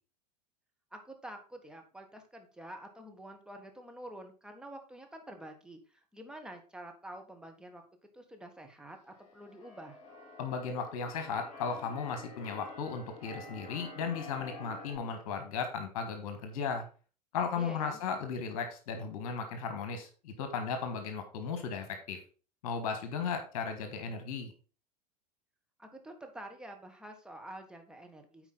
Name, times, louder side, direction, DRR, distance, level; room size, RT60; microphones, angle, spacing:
voice 1, 0.9-7.8 8.1-10.0 17.5-18.0 25.8-28.5, right 1 dB, 5° right, 4 dB, 1.5 m, -48 dB
Keyboard (musical), 9.1-15.0, left 2 dB, 35° left, 4.1 m, -49 dB
voice 2, 10.4-16.8 17.3-22.2 22.6-24.5, left 5 dB, 60° left, 7 dB, 1.5 m, -36 dB
8.8 x 4.6 x 4.0 m, 0.37 s
figure-of-eight pair, 85°, 20 cm